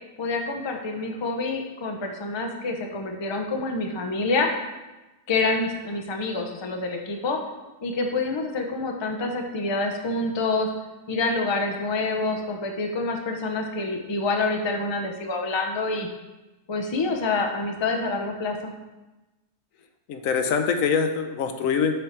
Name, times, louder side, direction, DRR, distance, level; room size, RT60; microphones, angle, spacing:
voice 1, 0.2-4.5 5.3-7.4 7.8-10.7 11.1-16.1 16.7-18.7, left 3 dB, 30° left, 3 dB, 0.5 m, -27 dB
voice 2, 20.1-22.0, left 6 dB, 80° left, 7 dB, 1.0 m, -24 dB
6.9 x 4.6 x 4.3 m, 1.1 s
omnidirectional pair, 1.4 m